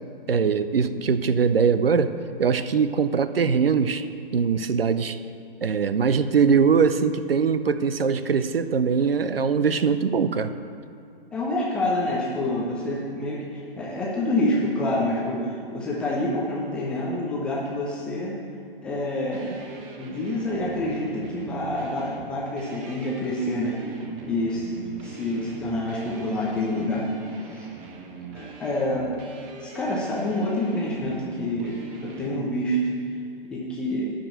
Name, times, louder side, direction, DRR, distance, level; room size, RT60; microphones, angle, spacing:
voice 1, 0.3-4.1 4.3-5.2 5.6-10.5, right 6 dB, 70° right, 12 dB, 0.6 m, -22 dB
voice 2, 11.3-18.4 18.8-19.6 20.0-23.8 24.2-27.1 27.5-27.7 28.3-29.1 29.6-32.8 33.5-34.1, left 1 dB, 5° left, -5 dB, 0.3 m, -27 dB
sound 1, 19.3-32.4, right 5 dB, 25° right, 1.1 m, -42 dB
11.5 x 5.1 x 7.7 m, 2.5 s
figure-of-eight pair, 115°, 30 cm